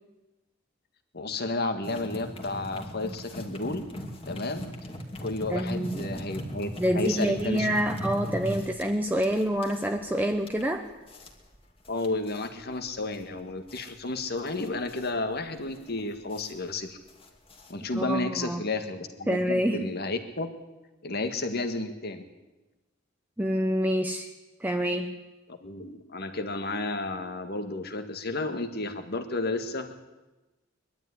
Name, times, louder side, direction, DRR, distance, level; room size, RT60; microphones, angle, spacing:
voice 1, 1.1-3.8 4.3-4.7 5.2-7.7 11.9-17.0 17.7-20.5 21.0-22.3 25.5-29.9, left 2 dB, 50° left, 7 dB, 1.9 m, -32 dB
sound 1, 1.8-18.1, equal, 25° left, 2.5 m, -40 dB
voice 2, 5.5-6.2 6.8-10.9 17.9-18.6 19.3-19.9 23.4-24.3 24.6-25.2, equal, 10° right, 4 dB, 0.9 m, -27 dB
21.5 x 12.5 x 9.8 m, 1.1 s
head